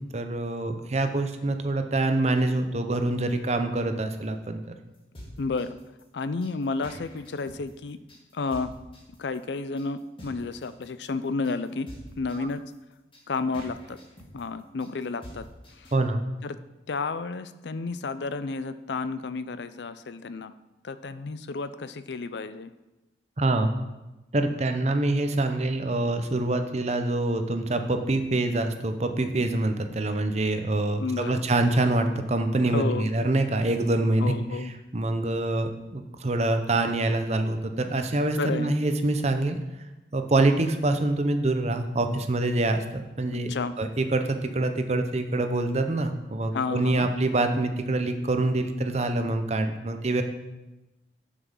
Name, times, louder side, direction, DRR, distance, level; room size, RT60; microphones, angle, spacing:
voice 1, 0.1-4.6 12.4-12.5 15.9-16.2 23.4-23.7 24.3-34.3 34.9-39.6 40.1-43.5 43.8-50.2, right 2 dB, 40° right, 7 dB, 0.7 m, -25 dB
sound 1, 4.9-16.0, equal, 30° left, 1.9 m, -46 dB
voice 2, 5.4-5.8 6.1-8.0 8.3-8.7 9.2-11.9 12.2-12.6 13.3-14.0 14.3-15.5 15.8-15.9 16.4-16.6 16.9-20.5 20.8-22.7 31.0-31.4 32.7-33.1 34.2-34.7 38.4-38.7 43.3-43.7 46.5-47.1, left 4 dB, 75° left, 13 dB, 0.5 m, -31 dB
7.2 x 7.0 x 5.4 m, 1.0 s
head